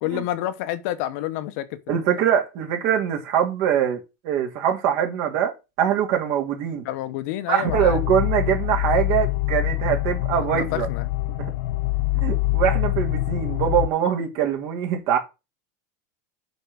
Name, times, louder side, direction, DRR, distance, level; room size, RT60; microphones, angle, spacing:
voice 1, 0.0-2.0 6.8-8.0 10.3-11.1, left 13 dB, 55° left, 1.0 m, -29 dB
voice 2, 1.9-6.8 7.5-10.9 11.4-11.5 12.1-15.2, right 9 dB, 50° right, 2.6 m, -23 dB
sound 1, 7.7-13.9, left 17 dB, 75° left, 0.6 m, -25 dB
6.8 x 5.4 x 6.2 m
supercardioid pair, 165°, 10 cm